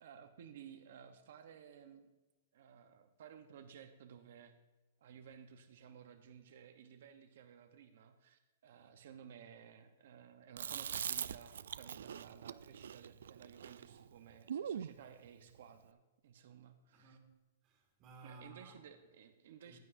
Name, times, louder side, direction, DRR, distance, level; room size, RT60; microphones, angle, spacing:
voice 1, 0.0-2.1 2.5-4.5 5.0-17.2 18.2-19.8, right 8 dB, 60° right, 7 dB, 0.9 m, -56 dB
Chewing mastication, 10.6-15.0, right 8 dB, 85° right, 0.3 m, -42 dB
voice 2, 16.9-18.8 19.6-19.8, right 3 dB, 25° right, 1 dB, 2.0 m, -57 dB
15.5 x 10.0 x 2.6 m, 1.1 s
hypercardioid pair, 170°, 0 cm